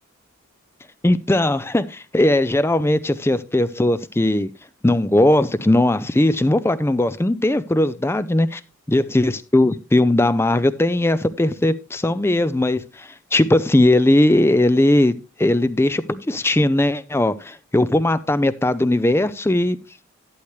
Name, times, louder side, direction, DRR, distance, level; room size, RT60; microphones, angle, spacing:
voice 1, 1.0-4.5 4.8-8.6 8.9-19.8, left 1 dB, 10° left, 14 dB, 0.4 m, -19 dB
11.5 x 8.0 x 3.2 m, 0.30 s
head